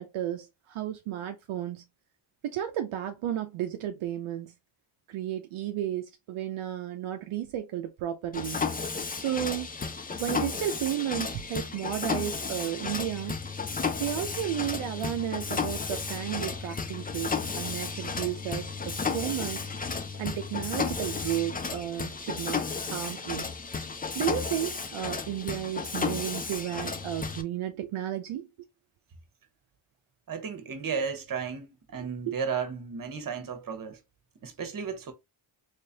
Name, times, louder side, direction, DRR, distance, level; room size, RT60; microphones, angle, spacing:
voice 1, 0.0-1.8 2.4-4.5 5.1-8.6 9.1-9.7 10.2-13.4 14.0-19.6 20.2-23.4 24.1-28.5 32.3-32.4, right 11 dB, 75° right, 0.6 m, -33 dB
Mechanisms, 8.3-27.4, left 5 dB, 20° left, 0.5 m, -33 dB
voice 2, 30.3-34.0 34.4-35.1, right 6 dB, 40° right, 1.1 m, -34 dB
3.2 x 3.2 x 2.7 m
cardioid pair, 60°, 49 cm